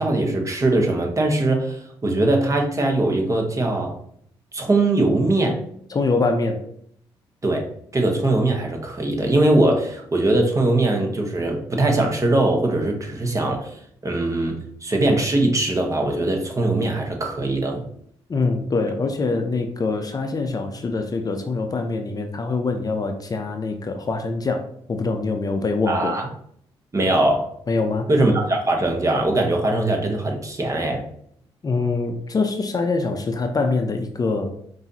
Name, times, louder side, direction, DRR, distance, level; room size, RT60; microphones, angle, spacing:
voice 1, 0.0-4.0 4.5-5.6 7.4-7.7 7.9-17.8 25.9-26.3 26.9-27.5 28.1-31.0, right 2 dB, 30° right, 2 dB, 1.2 m, -21 dB
voice 2, 5.9-6.6 18.3-26.2 27.7-28.1 31.6-34.5, left 3 dB, 35° left, 5 dB, 0.6 m, -24 dB
5.5 x 2.7 x 2.8 m, 0.67 s
supercardioid pair, 60°, 11 cm